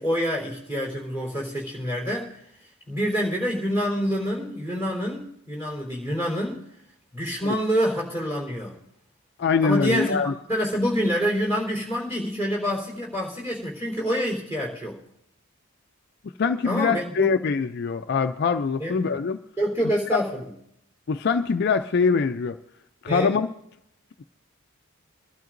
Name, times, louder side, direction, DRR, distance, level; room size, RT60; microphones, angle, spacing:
voice 1, 0.0-2.3 2.9-6.6 7.1-8.7 9.6-10.2 10.5-15.0 16.6-17.3 18.8-19.0 19.6-20.5 23.1-23.3, equal, 10° right, -2 dB, 3.8 m, -26 dB
voice 2, 9.4-10.3 16.4-19.4 21.1-22.6 23.0-23.5, left 5 dB, 50° left, 7 dB, 0.4 m, -23 dB
24.5 x 12.0 x 2.6 m, 0.76 s
head